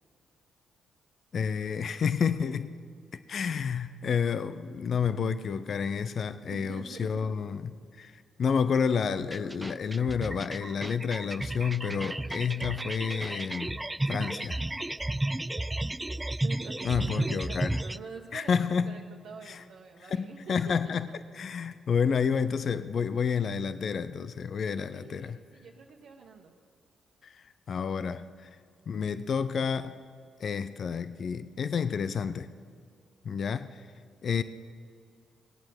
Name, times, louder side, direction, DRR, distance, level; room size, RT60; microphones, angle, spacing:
voice 1, 1.3-2.7 3.1-13.8 14.1-14.6 16.8-17.8 18.3-19.0 19.5-19.6 20.1-21.1 21.3-25.4 27.2-28.5 28.9-30.0 30.4-32.5 33.2-33.8 34.2-34.4, left 6 dB, 60° left, 13 dB, 0.5 m, -30 dB
voice 2, 6.5-7.4 16.4-18.6 18.8-20.9 24.9-26.5, right 5 dB, 75° right, -2 dB, 1.2 m, -46 dB
sound 1, 9.2-18.0, right 1 dB, 15° right, 0.3 m, -33 dB
19.0 x 8.7 x 7.8 m, 2.1 s
supercardioid pair, 55°, 0 cm